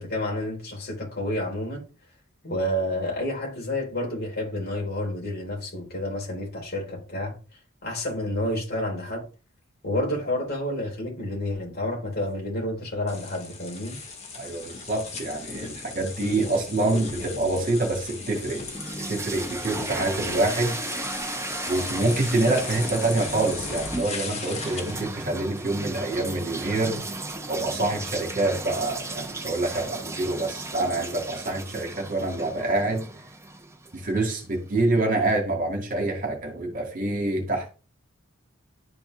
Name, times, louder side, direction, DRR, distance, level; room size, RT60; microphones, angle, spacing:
voice 1, 0.0-1.8 2.4-7.3 7.8-9.2 9.8-14.0, left 1 dB, 50° left, 4.0 m, -29 dB
sound 1, 13.1-25.1, left 3 dB, 30° left, 2.0 m, -37 dB
voice 2, 14.3-18.6 19.1-20.8 21.7-27.0 27.5-33.0 33.9-37.7, right 2 dB, 40° right, 2.2 m, -26 dB
sound 2, 18.3-34.3, right 2 dB, 15° right, 1.0 m, -35 dB
11.5 x 4.4 x 3.5 m
head